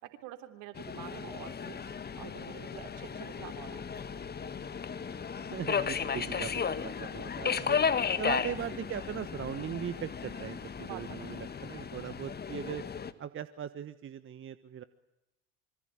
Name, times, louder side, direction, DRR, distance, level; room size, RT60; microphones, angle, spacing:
voice 1, 0.0-1.8 2.2-3.8 10.8-11.3, right 12 dB, 60° right, 8 dB, 3.8 m, -47 dB
Subway metro underground, 0.7-13.1, left 6 dB, 25° left, 1.9 m, -35 dB
voice 2, 5.5-7.8 8.2-12.8 13.2-14.8, right 9 dB, 35° right, 13 dB, 1.3 m, -39 dB
26.0 x 24.5 x 9.2 m, 0.92 s
hypercardioid pair, 70°, 35 cm